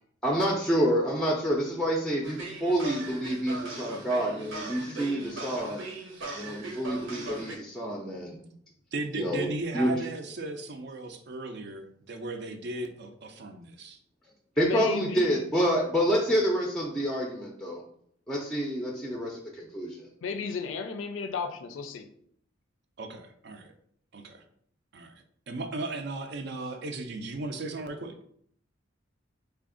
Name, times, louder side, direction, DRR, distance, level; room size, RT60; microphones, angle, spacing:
voice 1, 0.2-5.9 6.3-8.4 9.1-9.9 14.6-17.8 18.3-20.1, equal, 5° left, 0.4 m, -28 dB
sound 1, 2.2-7.6, right 2 dB, 85° right, 1.0 m, -39 dB
voice 2, 8.9-14.0 23.0-23.7 24.1-24.4 24.9-25.1 25.5-28.2, right 2 dB, 60° right, 0.5 m, -36 dB
voice 3, 14.6-15.3 20.2-22.1, left 5 dB, 75° left, 0.4 m, -33 dB
3.3 x 2.5 x 3.7 m
head